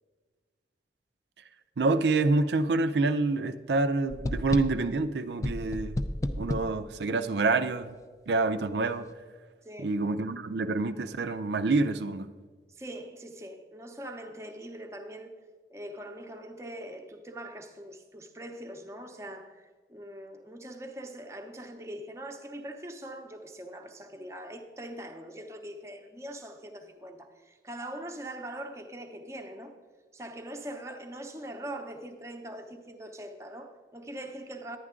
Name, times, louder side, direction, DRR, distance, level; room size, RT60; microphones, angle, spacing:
voice 1, 1.8-6.0 6.4-7.9 8.3-9.1 9.8-12.3, right 3 dB, 75° right, 0.5 m, -27 dB
sound 1, 4.1-4.9 5.4-6.8, left 1 dB, 20° left, 0.3 m, -31 dB
voice 2, 9.6-9.9 12.7-15.3 15.7-29.7 30.1-34.8, right 1 dB, 15° right, 0.7 m, -42 dB
11.0 x 9.4 x 3.7 m
head